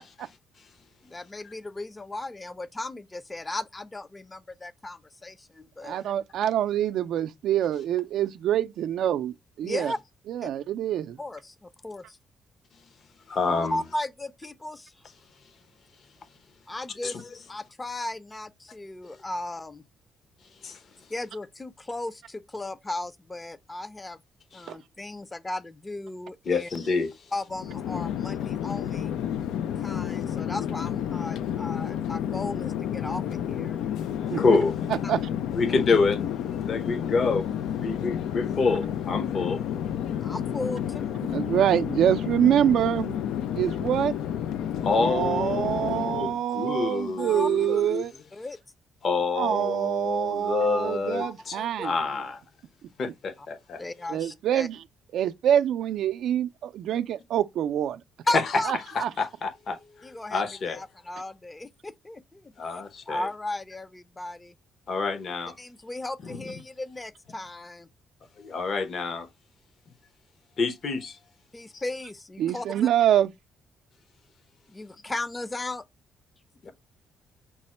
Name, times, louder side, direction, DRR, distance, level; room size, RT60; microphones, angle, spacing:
voice 1, 1.0-6.0 9.6-10.0 10.4-10.5 11.2-12.2 13.5-14.9 16.7-17.2 17.5-19.8 21.1-24.2 24.5-26.7 27.3-29.1 29.8-33.8 40.2-41.2 47.2-47.9 48.3-48.6 51.2-51.7 53.8-54.7 58.3-59.1 60.0-64.5 65.6-67.9 71.5-72.9 74.7-75.8 76.6-76.7, left 2 dB, 20° left, 0.5 m, -36 dB
voice 2, 5.8-9.9 10.3-11.2 24.7-24.8 34.3-34.6 34.9-35.2 41.3-43.2 43.6-44.1 44.9-48.1 49.4-51.9 54.1-54.8 55.1-58.0 58.7-59.1 72.4-73.3, right 10 dB, 75° right, 0.4 m, -25 dB
voice 3, 13.3-13.8 17.0-17.2 20.6-20.8 24.5-24.7 26.5-27.1 34.4-34.8 35.5-36.2 36.5-37.5 37.8-39.6 44.8-48.0 49.0-51.6 51.8-52.4 53.0-53.8 58.3-58.4 58.9-60.8 62.6-63.3 64.9-65.5 66.2-66.6 68.4-69.3 70.6-71.2 76.6-76.7, left 4 dB, 55° left, 0.9 m, -27 dB
Chatter / Fixed-wing aircraft airplane, 27.5-46.4, left 9 dB, 85° left, 0.4 m, -30 dB
5.9 x 2.1 x 4.2 m
cardioid pair, 90°, 0 cm